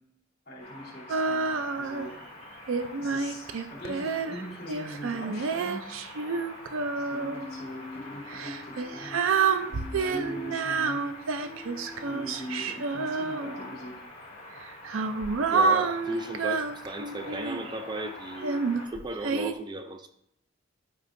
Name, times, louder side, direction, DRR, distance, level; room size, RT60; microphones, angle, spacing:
voice 1, 0.5-1.5 1.7-5.9 7.0-11.6 12.0-14.0, equal, 55° left, -4 dB, 3.0 m, -42 dB
sound 1, 0.6-18.9, left 1 dB, 35° left, 2.9 m, -46 dB
Female singing, 1.1-2.1 2.7-7.5 8.3-13.8 14.6-17.7 18.4-19.5, right 4 dB, 90° right, 0.5 m, -29 dB
sound 2, 7.1-12.3, left 3 dB, 10° left, 1.1 m, -45 dB
voice 2, 15.5-20.1, right 2 dB, 20° right, 6 dB, 0.4 m, -36 dB
12.5 x 5.4 x 2.6 m, 0.79 s
head